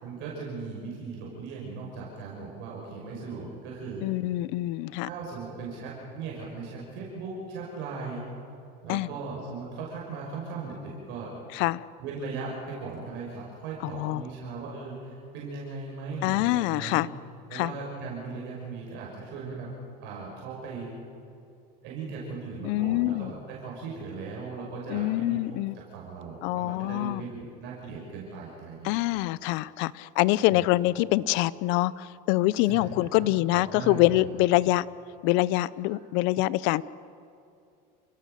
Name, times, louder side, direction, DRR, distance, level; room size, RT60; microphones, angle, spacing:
voice 1, 0.0-4.1 5.0-8.2 8.8-11.3 12.0-17.0 17.5-19.7 20.0-20.9 21.8-25.4 25.7-28.9 30.5-30.6 32.6-33.3 33.5-34.3, right 4 dB, 65° right, -3 dB, 5.8 m, -38 dB
voice 2, 4.0-5.1 8.9-9.1 11.5-11.8 13.8-14.2 16.2-17.1 17.5-17.7 22.6-23.3 24.9-25.8 26.4-27.2 28.8-34.8 35.2-36.8, left 18 dB, 65° left, 20 dB, 0.6 m, -25 dB
28.5 x 17.0 x 6.7 m, 2.5 s
supercardioid pair, 130°, 21 cm